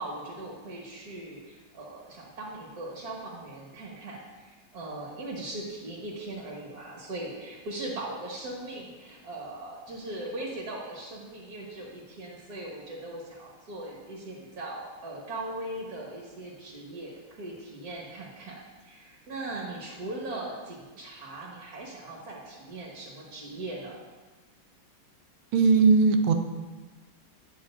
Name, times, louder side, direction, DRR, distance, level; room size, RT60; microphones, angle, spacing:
voice 1, 0.0-24.0, right 2 dB, 50° right, -4 dB, 1.7 m, -39 dB
voice 2, 25.5-26.3, right 4 dB, 85° right, 6 dB, 1.5 m, -19 dB
9.1 x 8.2 x 2.5 m, 1.3 s
omnidirectional pair, 2.2 m